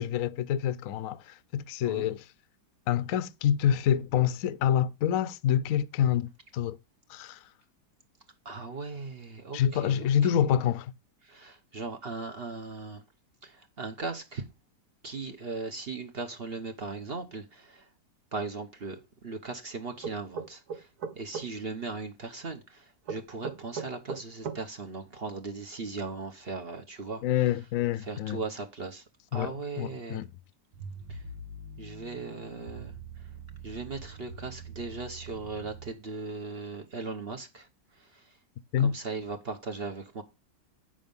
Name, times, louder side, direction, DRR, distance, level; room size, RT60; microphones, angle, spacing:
voice 1, 0.0-2.2 2.9-6.8 7.1-7.4 9.5-10.9 27.2-28.4 29.3-30.3 38.7-38.9, left 10 dB, 60° left, 0.9 m, -27 dB
voice 2, 8.4-10.3 11.2-13.0 13.4-14.5 15.0-17.9 18.3-20.9 21.2-27.6 28.0-29.0 29.3-30.2 31.1-31.2 31.8-33.3 33.6-38.4 38.8-40.2, right 3 dB, 40° right, 1.0 m, -38 dB
sound 1, 20.0-21.5 23.1-24.6, right 6 dB, 65° right, 1.7 m, -36 dB
sound 2, 30.7-35.9, right 4 dB, 85° right, 1.8 m, -44 dB
8.7 x 6.4 x 5.3 m
omnidirectional pair, 1.9 m